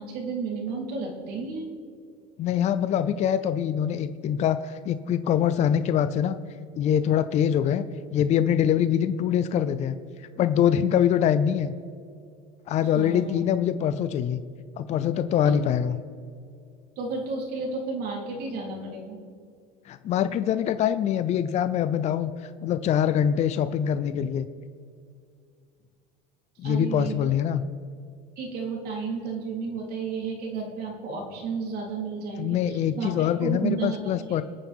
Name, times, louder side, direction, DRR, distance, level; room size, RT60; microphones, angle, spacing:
voice 1, 0.0-1.7 12.9-13.5 15.5-15.6 17.0-19.2 26.6-27.1 28.4-34.0, right 4 dB, 50° right, -1 dB, 3.7 m, -32 dB
voice 2, 2.4-6.4 6.8-7.8 8.1-10.0 10.4-11.7 12.7-14.4 14.8-16.0 19.9-24.5 26.6-27.6 32.4-34.4, left 9 dB, 35° left, 12 dB, 0.6 m, -24 dB
26.0 x 9.2 x 3.6 m, 2.3 s
supercardioid pair, 135°, 20 cm